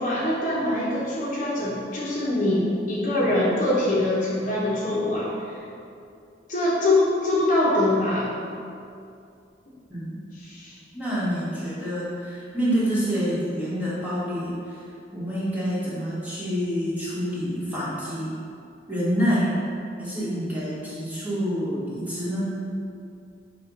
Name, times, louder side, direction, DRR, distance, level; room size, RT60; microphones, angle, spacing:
voice 1, 0.0-5.6 6.5-8.3 10.3-10.8, left 1 dB, 45° left, -7 dB, 1.2 m, -24 dB
voice 2, 9.9-10.2 10.9-14.8 15.1-18.3 18.9-19.5 20.0-22.5, equal, 10° right, -9 dB, 1.4 m, -27 dB
7.5 x 2.6 x 5.4 m, 2.5 s
head